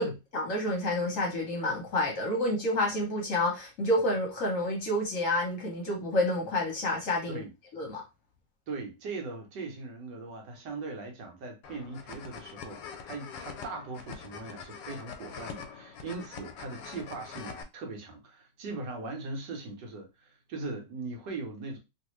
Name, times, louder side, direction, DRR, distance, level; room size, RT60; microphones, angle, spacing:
voice 1, 0.0-7.4 7.7-8.0, left 1 dB, 55° left, 1.1 m, -29 dB
voice 2, 8.7-21.8, right 3 dB, 70° right, 1.5 m, -40 dB
sound 1, 11.6-17.6, left 6 dB, 90° left, 1.3 m, -44 dB
3.1 x 2.6 x 3.1 m
omnidirectional pair, 1.9 m